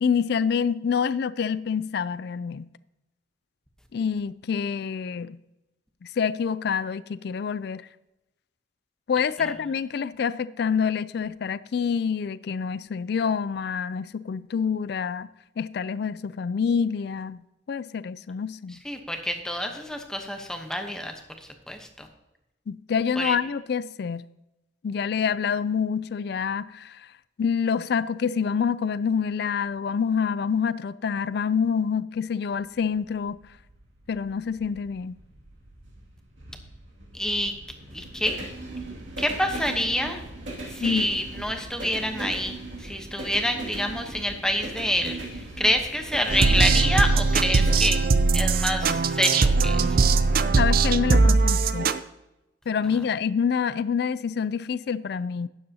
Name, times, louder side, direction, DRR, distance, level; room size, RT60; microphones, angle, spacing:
voice 1, 0.0-2.7 3.9-5.4 6.0-7.9 9.1-15.3 15.6-17.4 17.7-18.8 22.7-24.3 24.8-27.1 27.4-33.4 34.1-35.2 40.8-41.1 50.6-51.9 52.7-55.5, left 6 dB, 60° left, 0.3 m, -27 dB
voice 2, 18.8-21.1 21.7-22.1 23.2-23.3 37.1-37.5 37.9-38.4 39.2-40.2 40.7-42.6 42.8-48.0 48.3-50.0, equal, 5° left, 0.9 m, -27 dB
sound 1, 32.5-47.7, right 2 dB, 85° right, 2.3 m, -39 dB
sound 2, 46.3-52.0, right 4 dB, 50° right, 0.5 m, -20 dB
12.5 x 9.4 x 2.8 m
head